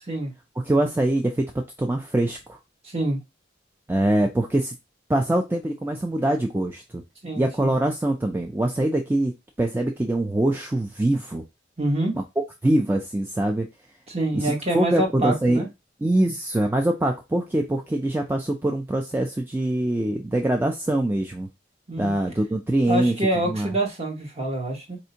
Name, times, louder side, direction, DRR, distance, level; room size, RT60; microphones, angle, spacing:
voice 1, 0.6-1.5 1.8-2.6 3.9-4.7 5.1-7.0 7.4-9.3 9.6-11.4 12.1-12.2 12.6-13.7 14.3-15.6 16.0-21.5 22.0-23.2 23.4-23.7, right 1 dB, 10° right, 0.4 m, -23 dB
voice 2, 2.8-3.2 7.2-7.7 11.8-12.1 14.1-15.7 21.9-22.1 22.9-25.0, right 1 dB, 35° right, 1.1 m, -26 dB
4.2 x 2.7 x 2.7 m
head